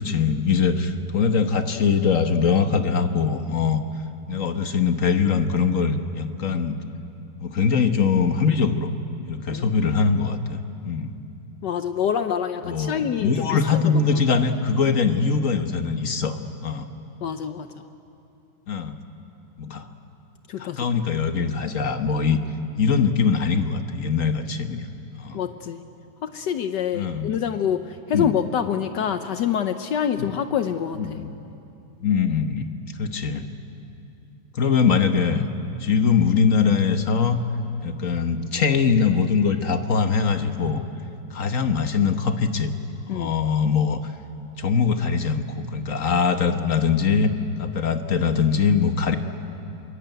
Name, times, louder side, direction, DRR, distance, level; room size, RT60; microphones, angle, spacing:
voice 1, 0.0-3.8 4.3-6.8 7.4-8.9 9.3-11.1 12.6-16.9 18.7-18.9 19.6-19.9 20.6-22.4 22.8-24.9 25.2-25.4 26.9-27.4 28.1-28.3 30.2-30.3 31.0-31.3 32.0-32.7 33.0-33.4 34.5-35.5 35.8-37.4 37.8-40.8 41.3-42.7 43.1-44.1 44.6-47.3 47.6-49.2, left 5 dB, 50° left, 8 dB, 1.4 m, -22 dB
voice 2, 11.6-13.8 17.2-17.7 20.5-20.9 25.3-25.8 26.3-31.2 43.1-43.3, left 8 dB, 70° left, 9 dB, 1.3 m, -26 dB
24.5 x 23.0 x 9.2 m, 2.7 s
omnidirectional pair, 2.1 m